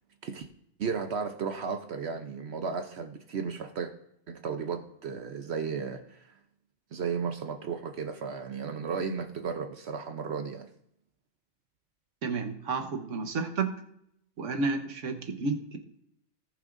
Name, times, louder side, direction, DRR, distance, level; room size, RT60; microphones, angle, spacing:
voice 1, 0.8-3.9 4.3-6.3 6.9-10.7, right 5 dB, 65° right, 6 dB, 1.0 m, -34 dB
voice 2, 12.2-13.8 14.4-15.8, right 4 dB, 85° right, 5 dB, 1.4 m, -31 dB
18.0 x 6.2 x 2.6 m, 0.74 s
omnidirectional pair, 1.2 m